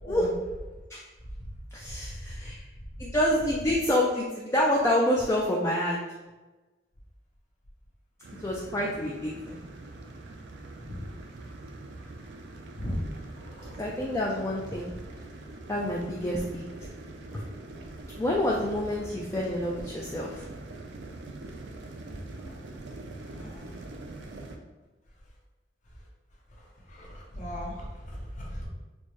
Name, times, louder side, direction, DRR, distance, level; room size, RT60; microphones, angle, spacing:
voice 1, 0.0-0.3 10.8-11.0 12.8-13.0 13.5-13.7 16.2-16.4 23.3-23.7 26.9-28.7, equal, 45° left, -3 dB, 0.9 m, -37 dB
voice 2, 1.7-2.6 3.0-6.0 8.4-9.6 13.8-14.9 15.7-16.6 18.2-20.4, left 1 dB, 15° left, -4 dB, 0.3 m, -27 dB
sound 1, 8.2-24.6, right 2 dB, 80° right, 0.4 m, -43 dB
4.4 x 2.1 x 2.9 m, 1.2 s
head